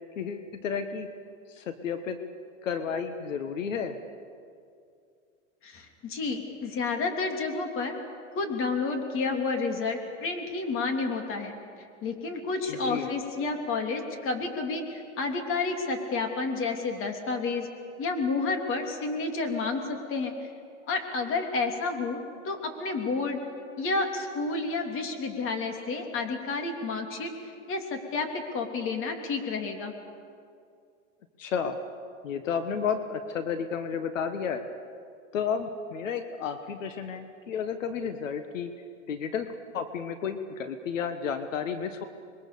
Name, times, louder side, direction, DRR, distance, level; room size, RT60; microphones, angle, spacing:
voice 1, 0.2-1.1 1.5-2.2 2.6-4.0 12.7-13.1 31.4-31.8 32.2-34.6 35.3-38.7 39.1-39.5 39.7-42.0, left 6 dB, 90° left, 9 dB, 1.5 m, -32 dB
voice 2, 5.6-7.9 8.3-11.5 12.0-17.7 18.0-20.5 20.9-23.4 23.8-27.3 27.7-29.9, left 3 dB, 35° left, 4 dB, 3.3 m, -30 dB
26.5 x 22.0 x 6.9 m, 2.4 s
supercardioid pair, 130°, 37 cm